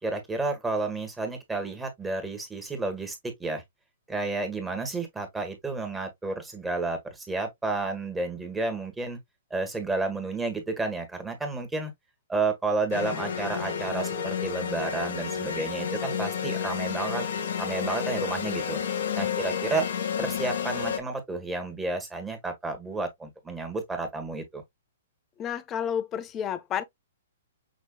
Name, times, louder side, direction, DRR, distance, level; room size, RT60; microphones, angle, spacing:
voice 1, 0.0-3.6 4.1-9.2 9.5-11.9 12.3-17.3 17.6-18.8 19.1-19.9 20.2-24.6, right 3 dB, 10° right, 1.6 m, -31 dB
sound 1, 12.9-21.0, left 7 dB, 65° left, 1.1 m, -31 dB
voice 2, 25.4-26.8, left 8 dB, 25° left, 0.8 m, -30 dB
6.4 x 3.0 x 2.4 m
hypercardioid pair, 125°, 0 cm